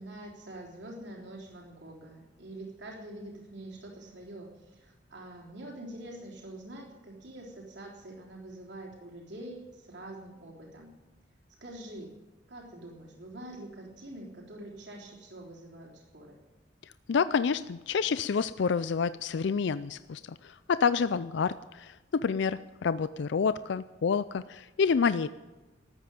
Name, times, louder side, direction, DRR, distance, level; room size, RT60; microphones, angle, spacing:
voice 1, 0.0-10.9 11.6-12.1 12.5-16.4, right 1 dB, 60° right, -1 dB, 3.6 m, -45 dB
voice 2, 17.1-25.3, left 5 dB, 60° left, 14 dB, 0.4 m, -28 dB
14.0 x 9.1 x 9.5 m, 1.2 s
head